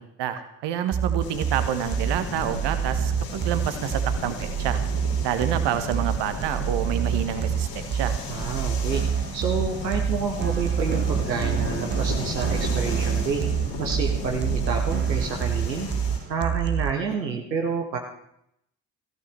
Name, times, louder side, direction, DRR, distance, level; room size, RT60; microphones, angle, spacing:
voice 1, 0.2-4.8 5.2-8.2, right 10 dB, 55° right, 9 dB, 1.5 m, -28 dB
sound 1, 0.9-16.9, right 8 dB, 25° right, 0.5 m, -27 dB
sound 2, 1.2-16.2, left 3 dB, 70° left, 4.8 m, -34 dB
voice 2, 8.3-9.0 9.3-13.4 13.8-15.9 16.3-18.0, right 5 dB, 85° right, 2 dB, 1.1 m, -29 dB
20.0 x 15.0 x 3.5 m, 0.75 s
figure-of-eight pair, 45°, 50 cm